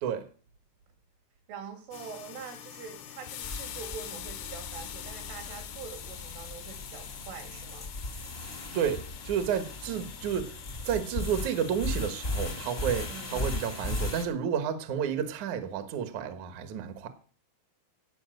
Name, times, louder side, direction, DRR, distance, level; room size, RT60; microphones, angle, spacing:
voice 1, 1.5-7.9 13.1-13.4, right 6 dB, 85° right, 5.5 m, -44 dB
sound 1, 1.9-13.7, left 12 dB, 75° left, 2.5 m, -45 dB
sound 2, 3.4-14.2, left 2 dB, 45° left, 0.8 m, -37 dB
voice 2, 8.7-17.1, right 8 dB, 70° right, 1.8 m, -31 dB
17.0 x 5.6 x 7.8 m
omnidirectional pair, 5.5 m